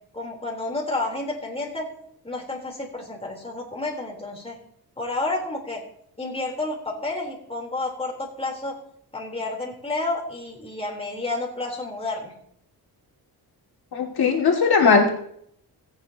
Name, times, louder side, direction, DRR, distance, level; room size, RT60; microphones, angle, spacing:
voice 1, 0.1-1.9 2.2-4.6 5.0-5.8 6.2-8.8 9.1-12.3, left 2 dB, 15° left, -1 dB, 3.7 m, -30 dB
voice 2, 13.9-15.1, left 5 dB, 70° left, 1 dB, 2.4 m, -18 dB
17.0 x 16.5 x 2.9 m, 0.70 s
wide cardioid pair, 130°, 39 cm